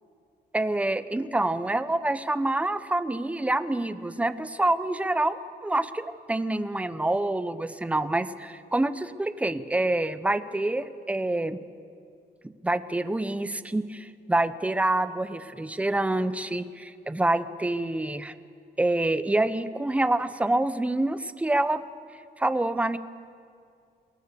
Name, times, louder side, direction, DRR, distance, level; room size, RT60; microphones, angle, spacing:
voice 1, 0.5-11.6 12.6-18.3 18.8-21.8 22.4-23.0, right 2 dB, 5° right, 13 dB, 0.7 m, -27 dB
27.5 x 22.0 x 6.8 m, 2.3 s
wide cardioid pair, 165°, 18 cm